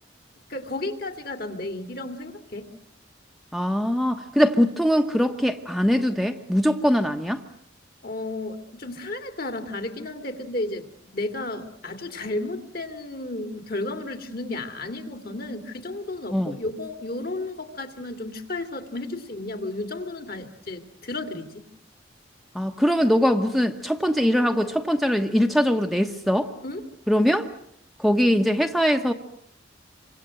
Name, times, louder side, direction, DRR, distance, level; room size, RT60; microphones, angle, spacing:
voice 1, 0.5-2.7 8.0-10.9 11.1-21.7 26.6-26.8, left 2 dB, 50° left, 7 dB, 2.7 m, -33 dB
voice 2, 3.5-7.4 16.3-16.5 22.5-26.5 27.1-27.5 28.0-29.1, equal, ahead, 4 dB, 1.0 m, -22 dB
28.0 x 25.0 x 7.7 m, 0.66 s
head